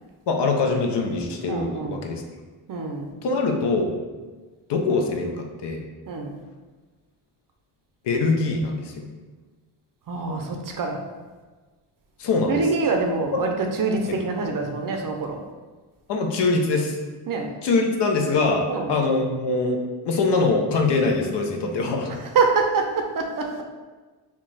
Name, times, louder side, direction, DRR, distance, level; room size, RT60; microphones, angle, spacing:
voice 1, 0.3-2.2 3.2-3.9 4.7-5.8 8.0-9.0 12.2-12.6 16.1-17.0 17.6-19.8 20.0-22.1, left 3 dB, 55° left, 3 dB, 0.7 m, -23 dB
voice 2, 1.5-2.1 2.7-3.1 6.1-6.4 10.1-11.0 12.5-15.4 17.3-17.5 18.7-19.0 22.1-23.6, right 4 dB, 45° right, 3 dB, 0.5 m, -25 dB
2.9 x 2.3 x 3.9 m, 1.3 s
supercardioid pair, 60°, 49 cm